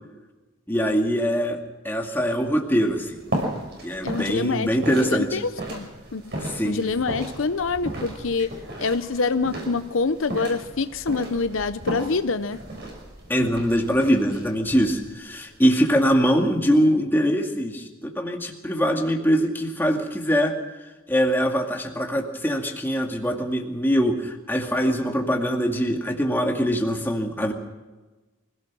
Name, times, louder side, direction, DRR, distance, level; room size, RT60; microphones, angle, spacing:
voice 1, 0.7-1.6 1.8-3.2 3.8-5.4 6.4-6.9 13.3-20.5 21.1-27.5, equal, 10° left, 1 dB, 2.2 m, -23 dB
sound 1, 2.9-16.9, right 1 dB, 55° right, 5.9 m, -35 dB
voice 2, 4.0-4.7 5.1-6.3 6.6-8.5 8.8-12.6, left 4 dB, 70° left, 12 dB, 0.7 m, -26 dB
25.0 x 17.0 x 6.2 m, 1.2 s
head